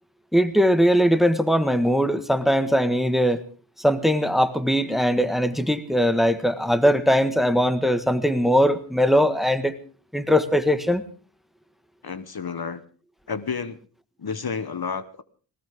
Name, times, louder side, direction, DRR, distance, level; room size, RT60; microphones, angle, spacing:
voice 1, 0.3-3.4 3.8-9.7 10.1-11.0, equal, ahead, 11 dB, 1.6 m, -20 dB
voice 2, 12.0-12.8 13.3-13.8 14.2-15.2, left 5 dB, 55° left, 13 dB, 1.1 m, -30 dB
20.0 x 18.5 x 3.7 m, 0.39 s
wide cardioid pair, 60°, 44 cm